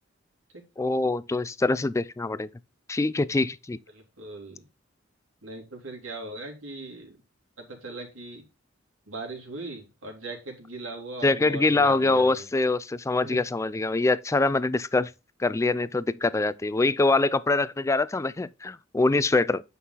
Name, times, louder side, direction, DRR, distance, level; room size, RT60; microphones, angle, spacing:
voice 1, 0.8-2.5 2.9-3.8 11.2-15.1 15.4-19.6, left 3 dB, 15° left, 0.3 m, -24 dB
voice 2, 3.9-4.6 5.4-7.1 7.6-8.4 9.1-12.4 13.2-13.4, right 2 dB, 90° right, 2.9 m, -39 dB
8.6 x 5.6 x 3.9 m
head